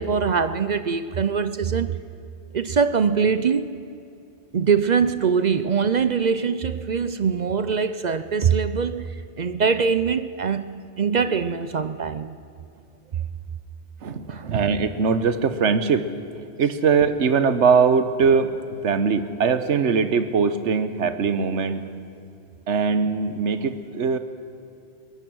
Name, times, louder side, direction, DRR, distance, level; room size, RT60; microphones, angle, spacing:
voice 1, 0.0-2.0 2.5-3.7 4.5-12.3 14.3-14.4, right 6 dB, 50° right, 0.6 m, -23 dB
voice 2, 14.0-16.1 16.6-21.8 22.7-24.2, right 5 dB, 80° right, 1.3 m, -21 dB
22.5 x 19.0 x 6.2 m
omnidirectional pair, 1.2 m